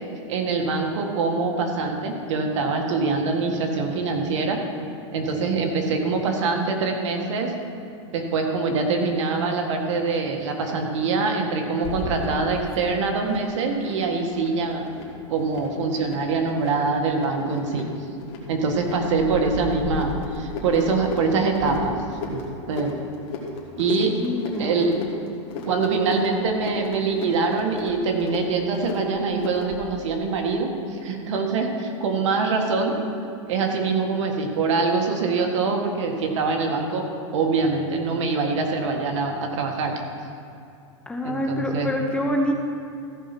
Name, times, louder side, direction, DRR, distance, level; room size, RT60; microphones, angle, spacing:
voice 1, 0.3-4.6 5.1-7.5 8.1-14.9 15.3-17.9 18.5-22.0 22.2-22.4 22.7-22.9 23.8-24.2 24.6-24.9 25.5-32.9 33.5-37.1 37.3-39.9 41.2-41.9, right 4 dB, 70° right, 3 dB, 1.7 m, -24 dB
sound 1, 11.8-29.9, left 3 dB, 35° left, 2.0 m, -36 dB
voice 2, 24.1-24.9 41.1-42.5, left 1 dB, 5° left, 1 dB, 0.8 m, -26 dB
14.5 x 5.5 x 6.1 m, 2.7 s
supercardioid pair, 145°, 16 cm